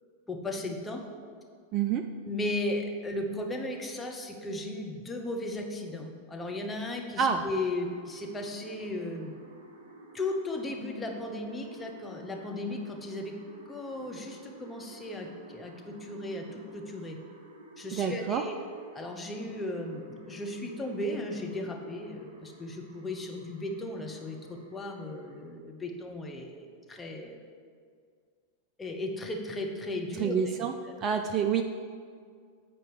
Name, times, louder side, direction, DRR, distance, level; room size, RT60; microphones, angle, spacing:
voice 1, 0.3-1.0 2.3-9.3 10.1-13.3 13.7-17.2 17.8-18.6 18.9-27.5 28.8-31.0, left 1 dB, 15° left, 1 dB, 0.9 m, -36 dB
voice 2, 1.7-2.0 7.2-7.4 17.9-18.4 30.2-30.7 31.0-31.6, right 7 dB, 30° right, 6 dB, 0.3 m, -27 dB
sound 1, 7.8-25.4, right 2 dB, 65° right, 1.0 m, -52 dB
8.3 x 4.5 x 4.7 m, 2.1 s
figure-of-eight pair, 90°, 0 cm